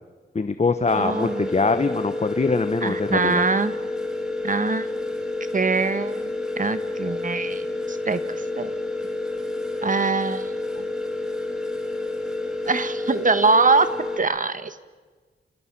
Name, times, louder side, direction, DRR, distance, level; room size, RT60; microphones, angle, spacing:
voice 1, 0.3-3.4, left 4 dB, 30° left, 10 dB, 1.0 m, -23 dB
sound 1, 0.9-14.2, left 2 dB, 5° right, 2.8 m, -29 dB
voice 2, 0.9-1.5 2.8-3.7 4.4-4.9 5.5-6.3 6.6-7.6 7.9-8.2 8.6-8.7 9.8-10.5 12.7-13.9 14.2-14.8, right 4 dB, 40° right, 12 dB, 1.2 m, -23 dB
29.0 x 20.0 x 6.0 m, 1.4 s
wide cardioid pair, 80°, 21 cm